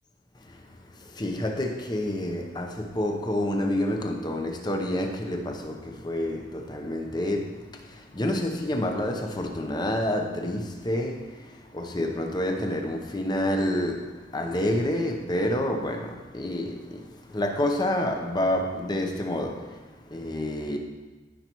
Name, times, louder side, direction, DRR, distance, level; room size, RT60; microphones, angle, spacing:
voice 1, 0.4-20.8, left 1 dB, 20° left, 0.8 m, -29 dB
15.5 x 5.6 x 3.0 m
head